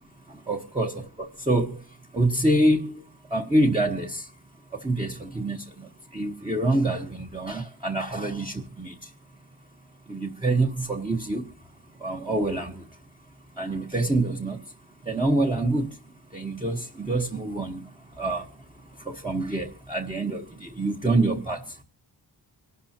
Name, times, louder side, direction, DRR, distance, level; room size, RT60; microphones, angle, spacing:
voice 1, 0.0-9.4 10.1-21.8, right 2 dB, 10° right, 1.2 m, -27 dB
26.0 x 12.5 x 2.8 m
wide cardioid pair, 150°, 44 cm